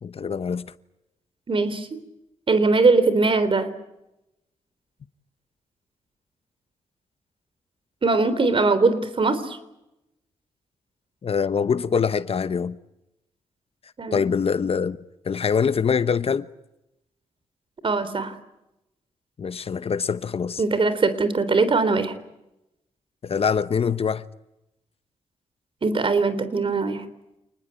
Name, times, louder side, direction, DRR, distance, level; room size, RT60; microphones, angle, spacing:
voice 1, 0.0-0.7 11.2-12.8 14.1-15.0 15.2-16.5 19.4-20.6 23.2-24.2, left 6 dB, 50° left, 1.0 m, -24 dB
voice 2, 1.5-2.0 2.5-3.7 8.0-9.6 14.0-14.3 17.8-18.4 20.6-22.1 25.8-27.0, right 3 dB, 45° right, 3.7 m, -21 dB
28.0 x 20.5 x 9.0 m
cardioid pair, 70°, 12 cm